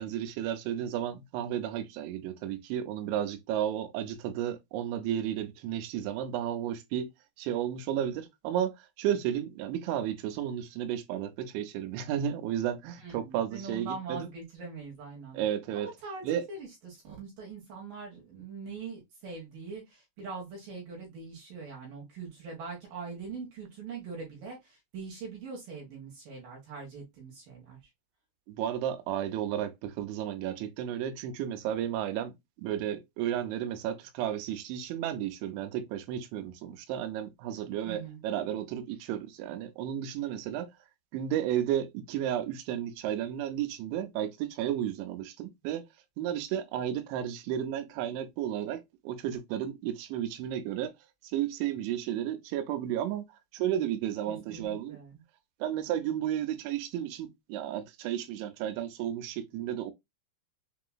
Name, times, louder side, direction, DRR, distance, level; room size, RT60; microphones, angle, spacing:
voice 1, 0.0-7.1 7.4-14.3 15.3-15.9 16.2-16.4 28.5-32.3 32.6-40.7 41.1-45.8 46.2-50.9 51.2-53.2 53.5-55.0 55.6-59.9, right 10 dB, 80° right, 3.0 m, -33 dB
voice 2, 13.0-15.4 15.7-27.8 37.8-38.2 54.3-55.1, right 4 dB, 60° right, 2.6 m, -42 dB
6.9 x 2.9 x 2.2 m
omnidirectional pair, 5.4 m